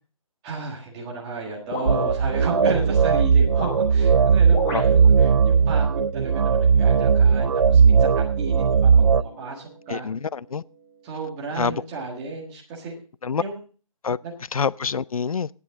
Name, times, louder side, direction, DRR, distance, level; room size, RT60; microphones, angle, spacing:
voice 1, 0.4-10.1 11.0-12.9 13.3-13.6 14.2-14.3, right 3 dB, 10° right, 1.6 m, -33 dB
sound 1, 1.7-2.8 3.4-3.8 4.5-4.9, left 2 dB, 5° left, 0.7 m, -31 dB
sound 2, 1.9-9.2, right 6 dB, 70° right, 0.5 m, -18 dB
Guitar, 7.0-12.1, right 4 dB, 35° right, 2.8 m, -48 dB
voice 2, 9.9-10.6 11.6-11.8 13.2-13.4 14.0-14.2 14.5-15.5, left 6 dB, 75° left, 0.5 m, -26 dB
18.0 x 8.4 x 3.7 m
hypercardioid pair, 175°, 18 cm